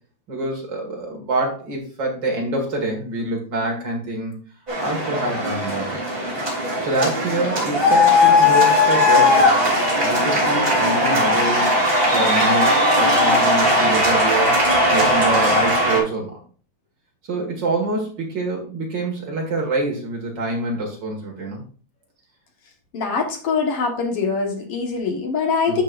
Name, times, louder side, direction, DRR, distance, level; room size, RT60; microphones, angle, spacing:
voice 1, 0.3-4.3 4.8-6.0 6.8-9.5 10.0-14.6 14.9-16.4 17.3-21.6 25.7-25.8, right 2 dB, 40° right, -1 dB, 2.1 m, -26 dB
sound 1, 4.7-16.0, left 1 dB, 15° right, 3.1 m, -18 dB
voice 2, 22.9-25.8, left 5 dB, 50° left, 2 dB, 2.1 m, -23 dB
11.5 x 6.5 x 2.6 m, 0.40 s
omnidirectional pair, 3.8 m